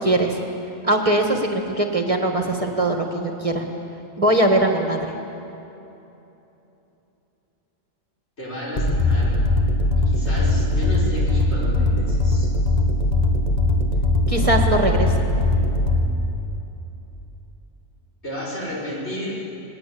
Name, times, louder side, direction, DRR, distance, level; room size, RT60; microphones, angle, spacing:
voice 1, 0.0-0.4 0.8-3.6 4.2-5.0 14.3-15.1, right 1 dB, 30° right, 3 dB, 1.6 m, -21 dB
voice 2, 8.4-9.4 9.9-12.5 18.2-19.4, left 1 dB, 65° left, -6 dB, 6.4 m, -32 dB
sound 1, 8.8-16.1, left 2 dB, 35° left, 1.5 m, -20 dB
20.5 x 20.5 x 8.6 m, 3.0 s
omnidirectional pair, 1.2 m